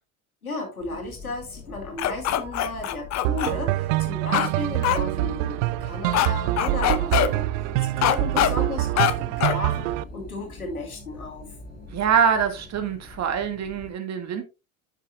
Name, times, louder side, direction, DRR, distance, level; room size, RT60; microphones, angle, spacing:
voice 1, 0.4-11.5, left 3 dB, 90° left, 2.5 m, -34 dB
sound 1, 0.8-13.9, left 2 dB, 20° left, 3.4 m, -43 dB
dog barking, 2.0-3.5 4.3-4.5 4.8-5.0 6.1-6.3 6.6-7.3 8.0-8.5 9.0-9.1 9.4-9.6, left 11 dB, 40° left, 0.9 m, -22 dB
sound 2, 3.2-10.0, right 16 dB, 60° right, 0.5 m, -25 dB
voice 2, 11.9-14.4, right 7 dB, 40° right, 2.0 m, -24 dB
11.0 x 6.5 x 2.3 m
figure-of-eight pair, 70°, 42 cm